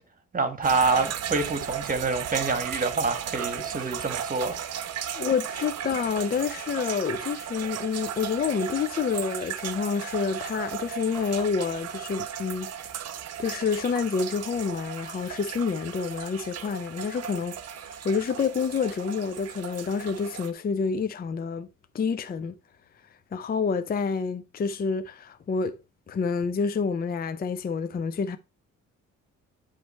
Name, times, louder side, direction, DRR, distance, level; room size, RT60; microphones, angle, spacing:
voice 1, 0.3-4.6, right 3 dB, 30° right, 1.5 m, -26 dB
sound 1, 0.6-20.5, right 9 dB, 55° right, 0.8 m, -35 dB
voice 2, 5.1-12.7 13.4-17.6 17.9-21.7 21.9-22.5 23.3-25.8 26.1-28.4, left 5 dB, 30° left, 0.5 m, -28 dB
9.3 x 3.2 x 4.2 m
cardioid pair, 90°, 30 cm